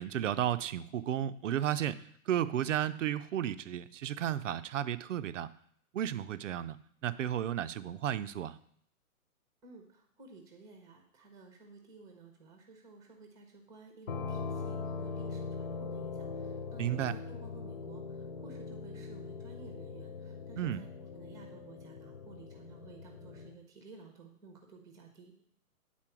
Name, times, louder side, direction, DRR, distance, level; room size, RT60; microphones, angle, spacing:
voice 1, 0.0-5.5 5.9-6.8 7.0-8.6 16.8-17.2 20.6-20.8, right 10 dB, 55° right, 13 dB, 0.6 m, -33 dB
voice 2, 9.6-20.9 21.1-25.3, right 3 dB, 10° right, 3 dB, 0.8 m, -54 dB
sound 1, 14.1-23.6, left 4 dB, 40° left, 0.4 m, -41 dB
9.2 x 4.2 x 6.0 m, 0.65 s
hypercardioid pair, 150°, 44 cm